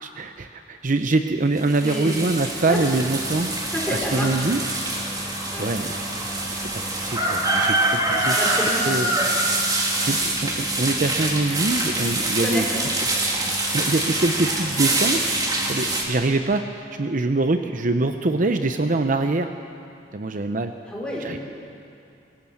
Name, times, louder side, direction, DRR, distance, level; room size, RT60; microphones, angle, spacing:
voice 1, 0.0-4.6 5.6-8.4 8.9-9.1 9.5-9.7 10.0-12.7 13.7-15.4 15.6-19.5 20.1-20.7 21.2-21.4, right 2 dB, 50° right, 7 dB, 0.7 m, -24 dB
sound 1, 1.6-16.0, right 2 dB, 20° right, 2.8 m, -25 dB
voice 2, 1.8-2.2 2.7-2.8 3.7-4.3 5.5-5.7 8.4-9.4 12.3-12.8 20.9-21.4, equal, 5° left, -4 dB, 5.1 m, -29 dB
22.5 x 18.0 x 7.2 m, 2.5 s
head